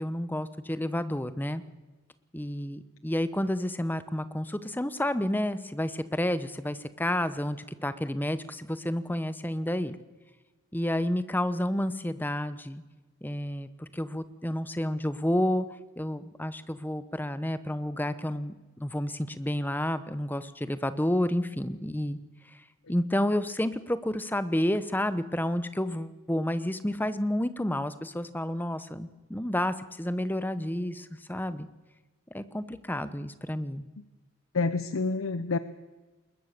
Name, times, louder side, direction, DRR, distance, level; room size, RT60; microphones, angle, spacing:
voice 1, 0.0-1.6 2.3-10.0 10.7-12.8 13.2-15.7 16.0-22.2 22.9-31.7 32.3-33.8, left 1 dB, 10° left, 13 dB, 0.9 m, -30 dB
voice 2, 34.5-35.6, left 3 dB, 80° left, 13 dB, 0.8 m, -28 dB
21.5 x 20.5 x 6.7 m, 1.2 s
head